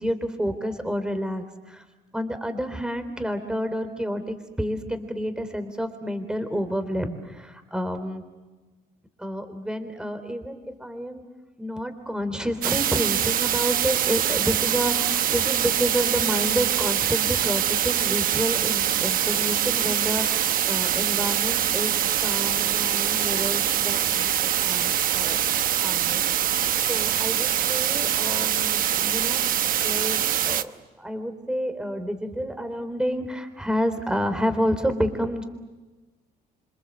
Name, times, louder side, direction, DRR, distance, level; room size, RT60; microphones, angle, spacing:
voice 1, 0.0-1.8 2.1-8.2 9.2-11.2 11.6-21.9 22.2-25.4 25.8-26.2 26.9-29.4 29.8-30.7 31.0-35.4, equal, 5° right, 8 dB, 3.7 m, -29 dB
sound 1, 12.6-30.6, right 10 dB, 55° right, 1.0 m, -24 dB
28.0 x 25.5 x 8.1 m, 1.2 s
cardioid pair, 110°, 17 cm